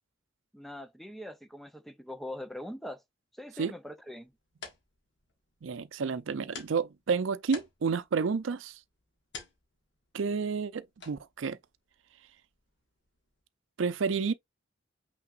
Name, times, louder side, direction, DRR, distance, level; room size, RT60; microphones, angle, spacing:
voice 1, 0.5-3.0 3.3-4.3, left 1 dB, ahead, 0.4 m, -42 dB
sound 1, 4.1-13.4, left 5 dB, 65° left, 1.5 m, -52 dB
voice 2, 5.6-8.8 10.1-11.6 13.8-14.3, right 5 dB, 85° right, 0.5 m, -30 dB
5.8 x 3.5 x 2.4 m
head